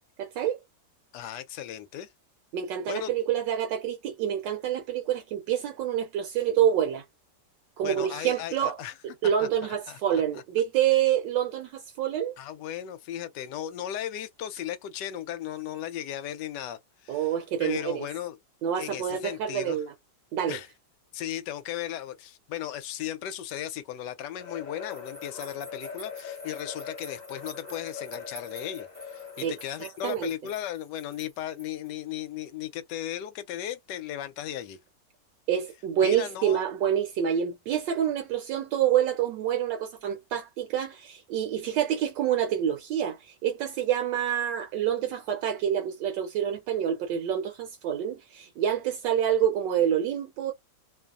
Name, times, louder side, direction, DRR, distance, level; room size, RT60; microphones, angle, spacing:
voice 1, 0.2-0.6 2.5-7.0 7.8-8.8 9.2-12.3 17.1-18.1 18.6-19.9 20.3-20.6 29.4-29.5 29.8-30.3 35.5-50.5, right 9 dB, 80° right, 1.2 m, -27 dB
voice 2, 1.1-2.1 2.9-3.1 7.8-8.9 9.9-10.0 12.4-17.3 17.6-18.4 18.8-19.8 20.5-20.7 21.1-34.8 36.0-36.6, left 11 dB, 75° left, 1.1 m, -36 dB
sound 1, 24.4-29.8, left 6 dB, 50° left, 0.5 m, -42 dB
sound 2, 24.9-31.9, right 1 dB, 20° right, 0.7 m, -49 dB
3.0 x 2.0 x 2.4 m
omnidirectional pair, 2.0 m